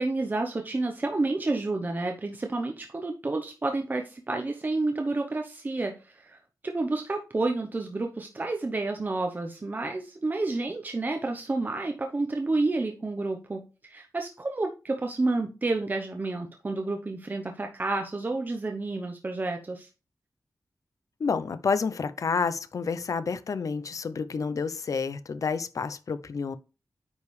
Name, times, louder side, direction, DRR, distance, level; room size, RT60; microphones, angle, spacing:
voice 1, 0.0-6.4 6.6-19.9, right 2 dB, 30° right, 0.8 m, -30 dB
voice 2, 21.2-26.6, left 5 dB, 60° left, 0.6 m, -29 dB
9.5 x 5.2 x 3.2 m
wide cardioid pair, 150°, 6 cm